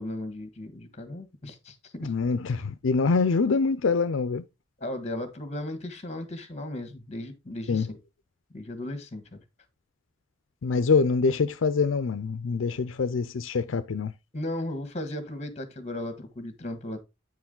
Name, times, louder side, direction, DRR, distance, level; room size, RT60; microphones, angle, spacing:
voice 1, 0.0-2.1 4.8-8.0 8.5-9.4 14.3-17.0, left 1 dB, 35° left, 1.6 m, -36 dB
voice 2, 2.0-4.4 7.7-7.9 10.6-14.1, left 4 dB, 75° left, 0.5 m, -25 dB
9.1 x 4.8 x 3.7 m
head